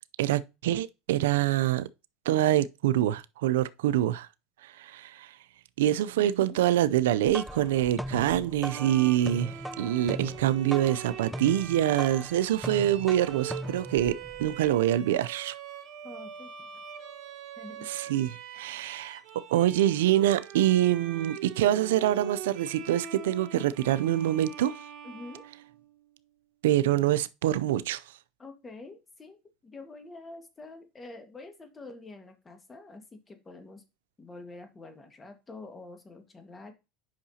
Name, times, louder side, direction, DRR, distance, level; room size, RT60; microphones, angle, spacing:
voice 1, 0.2-1.9 2.3-4.3 4.6-5.3 5.8-15.6 17.9-18.3 18.5-19.2 19.5-24.7 26.6-28.0, right 12 dB, 85° right, 0.4 m, -25 dB
voice 2, 6.2-6.6 16.0-16.8 17.6-18.2 25.0-25.5 28.4-33.8 34.2-36.7, left 2 dB, 20° left, 1.6 m, -47 dB
sound 1, 7.2-14.8, equal, ahead, 0.4 m, -39 dB
Bowed string instrument, 8.7-26.1, right 8 dB, 50° right, 2.6 m, -43 dB
8.5 x 5.7 x 2.8 m
supercardioid pair, 115°, 0 cm